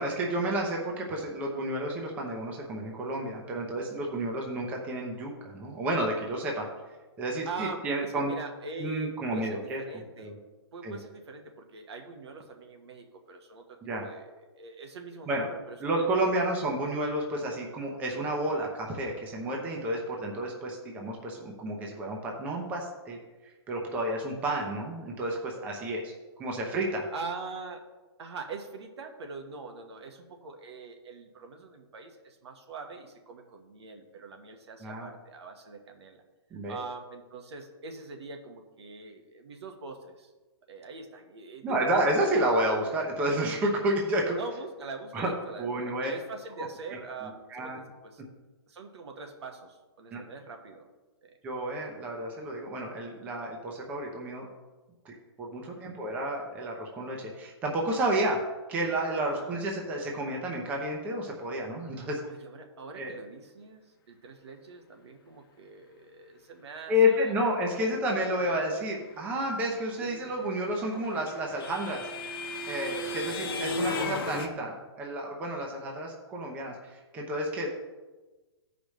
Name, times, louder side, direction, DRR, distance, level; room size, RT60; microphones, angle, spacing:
voice 1, 0.0-6.7 7.2-8.3 8.8-9.8 10.2-10.4 10.8-11.0 13.8-14.0 15.3-15.5 15.8-23.2 23.7-26.1 26.4-27.1 34.8-35.1 36.5-36.8 41.6-44.4 45.1-45.3 45.6-46.1 47.2-47.8 50.1-50.2 51.4-54.5 55.0-58.4 58.7-62.2 63.0-63.1 66.9-72.0 72.7-77.7, right 1 dB, 10° right, 0 dB, 0.7 m, -30 dB
voice 2, 7.4-10.3 10.7-15.8 16.2-16.5 18.5-18.6 24.0-24.1 27.1-27.9 28.2-36.2 36.7-40.3 40.7-41.9 44.3-48.2 48.7-50.9 51.2-51.4 55.8-56.1 58.9-59.6 62.2-67.5 67.8-68.8 70.0-70.4 73.7-74.1, right 4 dB, 80° right, 4 dB, 1.4 m, -43 dB
sound 1, 70.6-74.5, left 3 dB, 55° left, 0.9 m, -34 dB
14.5 x 4.9 x 3.1 m, 1.2 s
hypercardioid pair, 175°, 14 cm